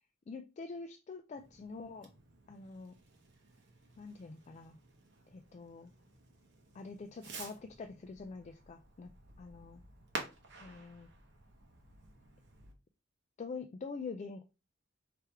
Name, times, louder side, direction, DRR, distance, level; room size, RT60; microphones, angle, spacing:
voice 1, 0.3-2.1 2.5-2.9 4.0-4.8 5.3-5.9 6.7-9.1 9.4-9.8 10.6-11.1 13.4-14.4, left 4 dB, 35° left, 6 dB, 0.3 m, -45 dB
Fireworks, 1.3-12.7, right 3 dB, 60° right, 1.0 m, -51 dB
3.4 x 3.3 x 4.4 m, 0.30 s
head